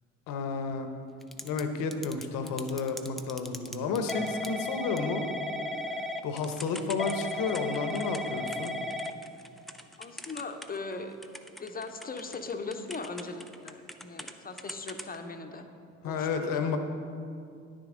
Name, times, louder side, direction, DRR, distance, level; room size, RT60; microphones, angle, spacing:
voice 1, 0.3-0.9 1.4-5.2 6.2-8.8 16.0-16.8, left 5 dB, 55° left, 7 dB, 1.0 m, -31 dB
Typing / Telephone, 1.2-1.6 1.9-10.9 11.2-14.3 14.6-15.1, left 1 dB, ahead, 0.5 m, -36 dB
voice 2, 10.0-11.2 11.6-15.7 16.0-16.8, left 3 dB, 25° left, 6 dB, 0.9 m, -39 dB
10.0 x 9.8 x 3.8 m, 2.5 s
figure-of-eight pair, 50°, 39 cm